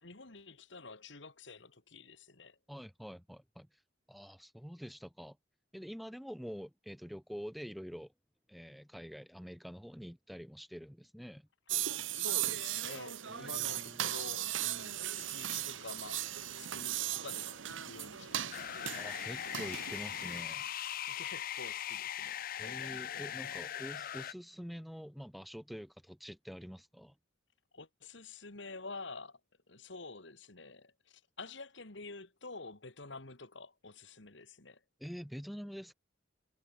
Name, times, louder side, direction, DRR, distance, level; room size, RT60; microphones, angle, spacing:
voice 1, 0.0-2.6 12.1-16.3 16.6-18.9 21.1-23.6 27.7-29.4 29.7-34.8, left 3 dB, 65° left, 2.3 m, -49 dB
voice 2, 2.7-3.7 4.1-5.4 5.7-8.1 8.5-11.5 13.3-14.1 18.9-20.7 22.6-27.1 35.0-35.9, equal, ahead, 1.8 m, -46 dB
sound 1, 11.7-20.4, right 12 dB, 75° right, 1.4 m, -37 dB
sound 2, 18.5-24.3, left 10 dB, 45° left, 0.5 m, -40 dB
head